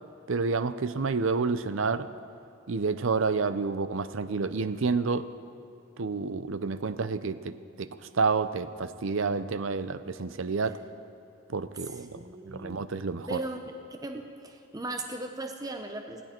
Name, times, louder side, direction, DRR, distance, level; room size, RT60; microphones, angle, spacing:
voice 1, 0.3-2.1 2.7-5.3 6.0-7.9 8.1-10.8 11.5-12.2 12.5-13.4, right 4 dB, 65° right, 13 dB, 0.6 m, -29 dB
voice 2, 11.8-12.9 13.3-13.6 14.0-16.2, right 2 dB, 15° right, 4 dB, 0.8 m, -38 dB
20.0 x 15.5 x 4.5 m, 2.8 s
head